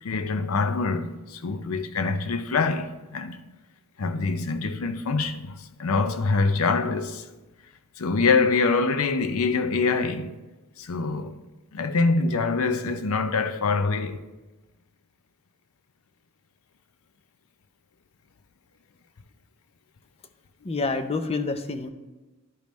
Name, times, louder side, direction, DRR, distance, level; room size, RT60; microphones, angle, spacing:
voice 1, 0.0-3.4 4.0-7.3 8.0-10.4 10.8-11.3 11.7-14.2, left 4 dB, 85° left, 0.6 m, -25 dB
voice 2, 20.6-21.9, left 3 dB, 30° left, 0.5 m, -27 dB
11.5 x 5.2 x 3.1 m
head